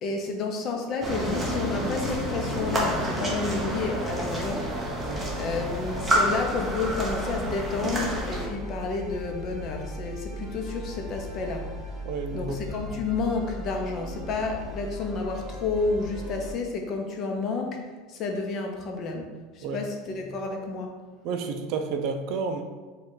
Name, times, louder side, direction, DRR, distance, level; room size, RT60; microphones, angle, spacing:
voice 1, 0.0-4.9 5.4-11.7 12.3-17.8 18.1-20.9, left 4 dB, 40° left, 2 dB, 0.6 m, -30 dB
sound 1, 1.0-8.5, right 1 dB, 10° right, 0.8 m, -29 dB
sound 2, 5.0-16.5, left 1 dB, 35° right, 1.1 m, -38 dB
voice 2, 12.0-12.6 19.6-19.8 21.2-22.6, right 5 dB, 55° right, 6 dB, 0.4 m, -30 dB
5.0 x 2.3 x 3.8 m, 1.4 s
supercardioid pair, 145°, 0 cm